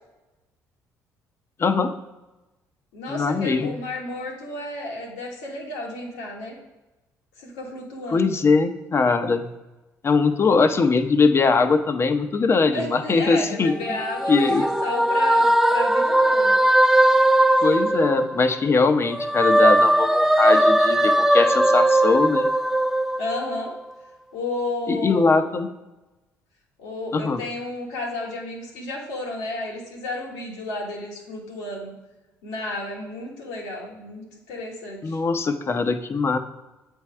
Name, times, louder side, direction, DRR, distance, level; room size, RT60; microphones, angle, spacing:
voice 1, 1.6-1.9 3.1-3.7 8.1-9.5 10.0-14.0 14.3-14.6 17.6-22.5 24.9-25.7 27.1-27.4 35.0-36.4, left 4 dB, 35° left, 8 dB, 0.7 m, -21 dB
voice 2, 2.9-6.5 7.4-8.3 12.7-16.6 23.2-23.7 24.3-25.5 26.8-31.9 32.4-35.2, left 2 dB, 90° left, -2 dB, 1.5 m, -32 dB
sound 1, 13.7-18.7 19.0-23.8, right 1 dB, 5° right, 0.5 m, -19 dB
8.0 x 3.5 x 4.4 m, 1.1 s
supercardioid pair, 65°, 7 cm